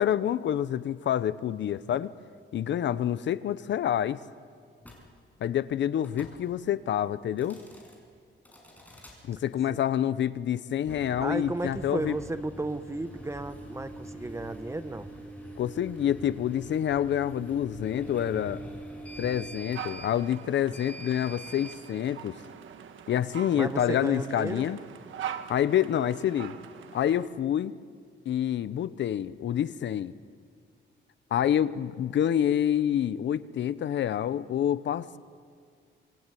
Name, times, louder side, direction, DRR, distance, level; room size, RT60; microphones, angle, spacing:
voice 1, 0.0-2.1 2.5-4.2 5.4-7.6 9.3-12.2 15.6-18.6 19.2-22.3 23.1-24.8 25.5-26.6 26.9-27.8 28.3-30.1 31.3-35.2, left 10 dB, 65° left, 16 dB, 0.8 m, -27 dB
sound 1, 4.8-5.0 6.0-6.4 7.3-8.0 8.4-9.2 10.8-21.8, right 1 dB, 10° left, 6.0 m, -44 dB
voice 2, 11.2-15.1 23.5-24.7, right 2 dB, 15° right, 10 dB, 1.1 m, -34 dB
sound 2, 19.7-27.3, right 8 dB, 80° right, 1.6 m, -43 dB
25.5 x 21.5 x 9.2 m, 2.1 s
cardioid pair, 135°, 20 cm